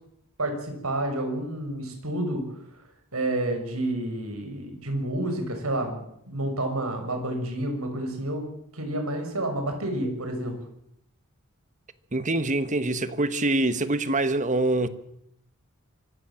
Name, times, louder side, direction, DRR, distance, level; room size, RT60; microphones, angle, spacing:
voice 1, 0.4-2.4 3.1-6.0 6.3-8.5 8.7-10.5, right 1 dB, 85° right, 6.6 m, -29 dB
voice 2, 12.1-14.9, right 2 dB, 35° right, 1.4 m, -25 dB
25.0 x 16.0 x 7.6 m
head